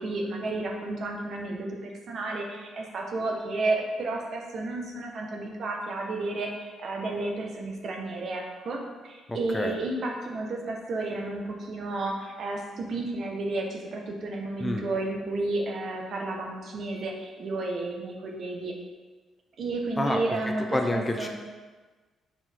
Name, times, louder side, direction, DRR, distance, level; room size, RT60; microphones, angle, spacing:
voice 1, 0.0-18.7 19.6-21.3, right 2 dB, 55° right, 1 dB, 1.1 m, -32 dB
voice 2, 9.3-9.7 14.6-14.8 20.0-21.3, left 1 dB, 10° left, 2 dB, 0.6 m, -29 dB
5.8 x 4.2 x 4.5 m, 1.3 s
cardioid pair, 90°, 0 cm